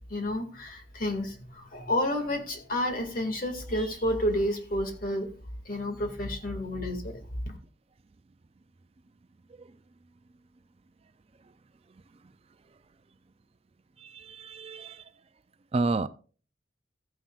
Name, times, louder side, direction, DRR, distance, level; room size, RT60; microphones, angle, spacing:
voice 1, 0.1-5.3 5.7-7.6, left 1 dB, 45° left, 4 dB, 2.1 m, -30 dB
voice 2, 14.0-15.0 15.7-16.1, right 3 dB, 30° right, 12 dB, 0.4 m, -30 dB
14.5 x 9.2 x 2.4 m, 0.38 s
head